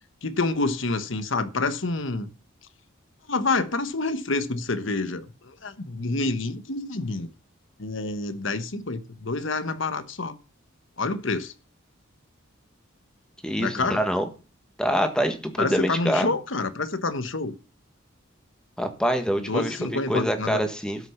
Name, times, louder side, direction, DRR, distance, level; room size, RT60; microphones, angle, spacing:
voice 1, 0.2-2.3 3.3-7.3 7.8-10.4 11.0-11.5 13.6-14.0 15.6-17.6 19.4-20.6, left 3 dB, 70° left, 1.2 m, -28 dB
voice 2, 13.4-14.2 14.8-16.3 18.8-21.1, equal, 5° left, 1.5 m, -25 dB
12.5 x 6.4 x 5.8 m
head